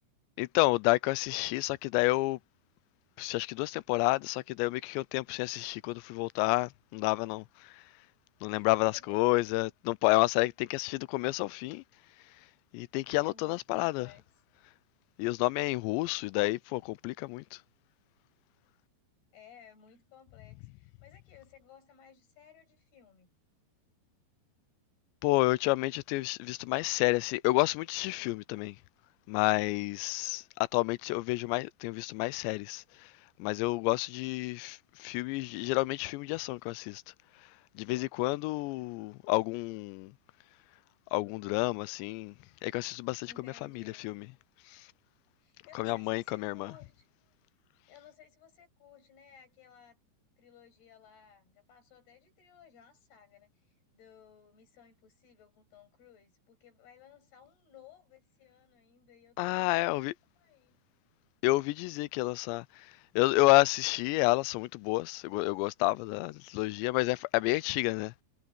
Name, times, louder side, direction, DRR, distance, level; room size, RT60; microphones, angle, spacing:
voice 1, 0.4-2.4 3.2-7.7 8.4-11.8 12.7-14.1 15.2-17.6 25.2-28.8 29.3-32.8 33.4-37.0 37.8-40.1 41.1-42.3 42.6-43.3 43.8-44.2 44.7-44.8 45.8-46.7 59.4-60.1 61.4-62.7 63.2-68.1, left 21 dB, 85° left, 2.8 m, -29 dB
voice 2, 8.5-9.2 13.2-14.2 19.3-23.3 38.6-39.1 43.3-44.1 45.4-47.1 47.9-50.0 50.4-60.0 60.4-60.8, left 8 dB, 60° left, 9.4 m, -58 dB
omnidirectional pair, 5.0 m